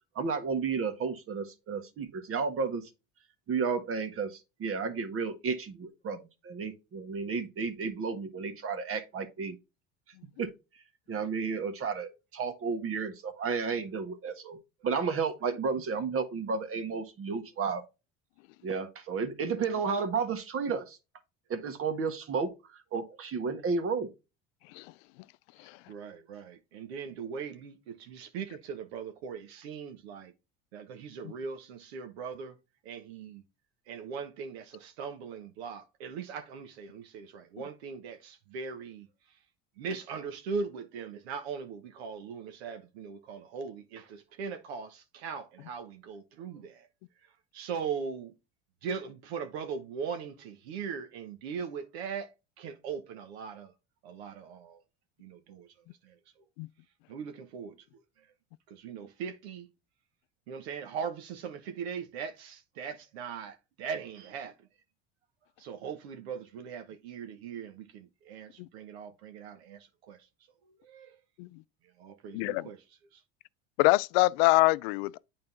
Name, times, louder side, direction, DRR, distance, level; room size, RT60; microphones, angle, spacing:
voice 1, 0.1-2.9 3.5-6.2 6.4-9.6 10.4-10.5 11.1-14.6 14.8-17.8 18.6-21.0 21.5-24.1, right 5 dB, 45° right, 1.6 m, -32 dB
voice 2, 25.9-30.3 30.7-32.5 32.8-33.4 33.9-39.1 39.8-46.9 47.5-48.3 48.8-52.3 52.6-53.7 54.0-54.8 55.2-55.7 56.0-56.1 57.1-57.8 58.7-59.7 60.5-64.5 65.6-70.2 70.7-71.2 72.0-72.8, right 6 dB, 80° right, 1.2 m, -40 dB
voice 3, 72.3-72.7 73.8-75.2, left 21 dB, 75° left, 0.5 m, -24 dB
8.7 x 3.9 x 3.9 m
hypercardioid pair, 85°, 31 cm